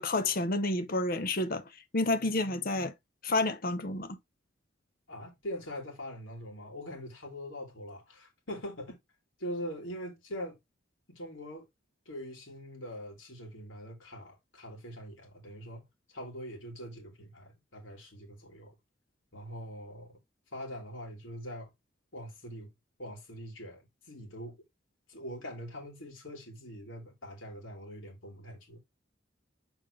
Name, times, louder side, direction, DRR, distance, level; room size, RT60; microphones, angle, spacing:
voice 1, 0.0-1.6 1.9-2.9 3.2-4.2, left 2 dB, 50° left, 0.9 m, -29 dB
voice 2, 5.1-9.0 9.4-10.6 11.1-11.7 12.1-15.8 16.1-18.7 19.3-20.2 20.5-21.7 22.1-22.7 23.0-24.6 25.1-28.8, equal, 85° left, 3.0 m, -43 dB
6.7 x 4.5 x 3.2 m
head